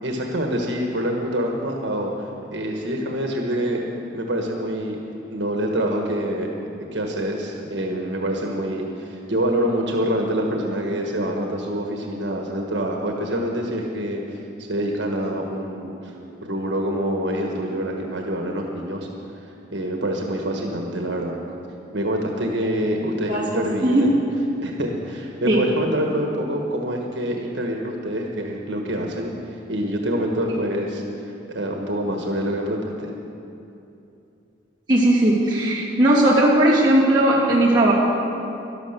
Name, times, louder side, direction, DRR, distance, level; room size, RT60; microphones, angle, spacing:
voice 1, 0.0-3.8 4.1-5.0 5.3-6.5 6.9-14.4 14.7-16.1 16.4-19.1 19.7-21.4 21.9-24.2 24.6-29.3 29.7-31.0 31.5-33.1, equal, 75° right, 1 dB, 1.4 m, -26 dB
voice 2, 34.9-37.9, right 1 dB, 25° right, -7 dB, 2.8 m, -17 dB
12.0 x 11.5 x 6.7 m, 2.8 s
head